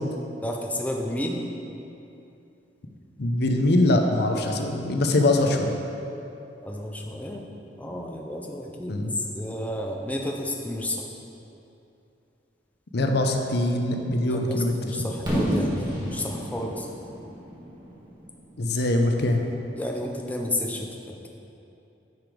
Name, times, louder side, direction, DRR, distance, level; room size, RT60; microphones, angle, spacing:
voice 1, 0.4-1.4 6.6-7.4 7.8-11.0 14.3-16.9 19.8-20.9, left 1 dB, 10° left, 0 dB, 0.5 m, -31 dB
voice 2, 3.2-5.7 8.9-9.1 12.9-15.1 18.6-19.4, left 1 dB, 65° left, 4 dB, 0.7 m, -23 dB
Fireworks, 15.3-19.1, equal, 25° right, 1.7 m, -30 dB
9.3 x 5.1 x 5.1 m, 2.8 s
head